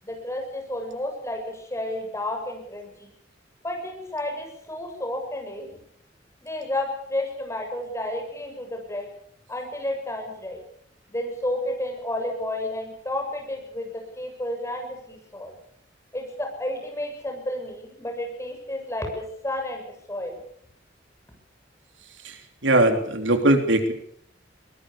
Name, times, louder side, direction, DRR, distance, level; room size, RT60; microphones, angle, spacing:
voice 1, 0.0-3.1 3.6-5.8 6.4-9.1 9.5-10.6 11.1-13.9 14.2-15.5 16.1-20.4, left 1 dB, 15° left, 2 dB, 7.5 m, -31 dB
voice 2, 22.6-23.9, right 1 dB, 80° right, 6 dB, 3.4 m, -20 dB
23.0 x 21.0 x 7.1 m, 0.63 s
head